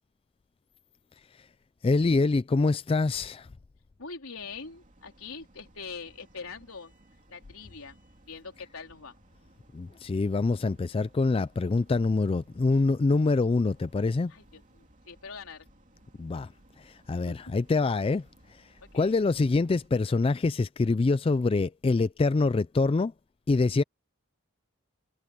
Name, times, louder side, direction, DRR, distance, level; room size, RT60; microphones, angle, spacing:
voice 1, 1.8-3.5 9.7-14.3 16.2-16.5 16.8-18.7 18.9-23.1 23.5-23.8, left 3 dB, 25° left, 0.3 m, -25 dB
voice 2, 4.0-6.9 7.3-8.0 8.3-9.2 14.3-15.7 17.3-17.4 18.9-19.2, left 5 dB, 80° left, 3.9 m, -43 dB
sound 1, 4.3-19.9, right 1 dB, 35° right, 2.8 m, -60 dB
head